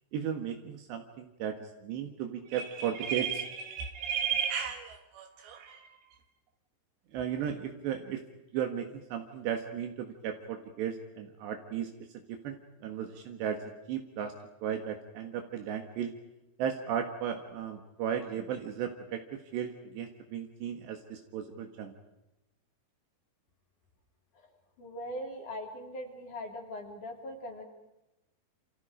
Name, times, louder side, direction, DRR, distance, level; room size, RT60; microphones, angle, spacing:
voice 1, 0.1-5.9 7.1-8.2 8.5-11.9 12.4-13.6 13.9-14.3 14.6-16.1 16.6-21.9, right 8 dB, 80° right, 4 dB, 3.8 m, -35 dB
voice 2, 24.8-27.6, equal, 45° left, 3 dB, 4.7 m, -40 dB
28.5 x 28.0 x 5.1 m, 0.95 s
omnidirectional pair, 5.0 m